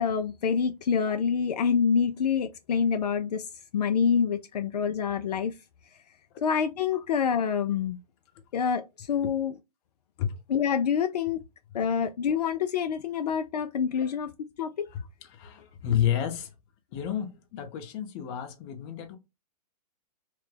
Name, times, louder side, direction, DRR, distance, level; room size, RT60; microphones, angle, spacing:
voice 1, 0.0-3.5 3.7-5.5 6.4-8.0 8.5-9.5 10.5-11.4 11.7-14.9, left 7 dB, 75° left, 0.4 m, -26 dB
voice 2, 14.9-16.5 16.9-19.2, left 10 dB, 40° left, 0.9 m, -31 dB
3.2 x 2.2 x 3.3 m
hypercardioid pair, 120°, 21 cm